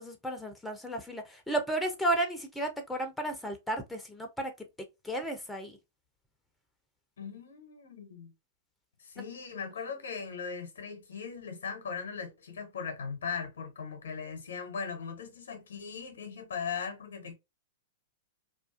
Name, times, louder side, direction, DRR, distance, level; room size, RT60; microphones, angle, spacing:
voice 1, 0.0-4.5 5.0-5.8 9.2-9.3, right 1 dB, 5° left, 0.5 m, -33 dB
voice 2, 7.2-8.3 9.0-17.3, left 6 dB, 70° left, 0.7 m, -39 dB
2.4 x 2.3 x 2.3 m
figure-of-eight pair, 105°, 0 cm